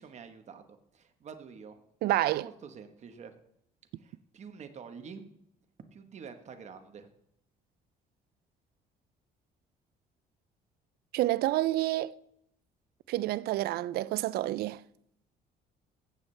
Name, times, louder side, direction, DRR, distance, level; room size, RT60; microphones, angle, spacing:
voice 1, 0.0-1.8 2.4-3.3 4.0-5.2 5.9-7.1, right 6 dB, 40° right, 1.1 m, -47 dB
voice 2, 2.0-2.5 11.1-12.1 13.1-14.8, right 16 dB, 70° right, 0.4 m, -28 dB
16.0 x 7.2 x 3.3 m
cardioid pair, 110°, 17 cm